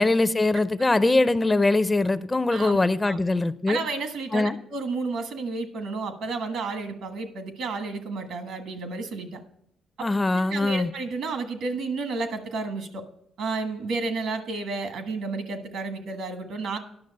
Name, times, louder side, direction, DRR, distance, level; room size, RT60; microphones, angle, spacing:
voice 1, 0.0-3.8 4.3-4.5 10.0-10.9, left 2 dB, 20° left, 0.4 m, -22 dB
voice 2, 3.7-9.4 10.3-13.0 13.4-16.8, right 3 dB, 80° right, 1.3 m, -31 dB
10.5 x 6.3 x 5.4 m
cardioid pair, 90°, 0 cm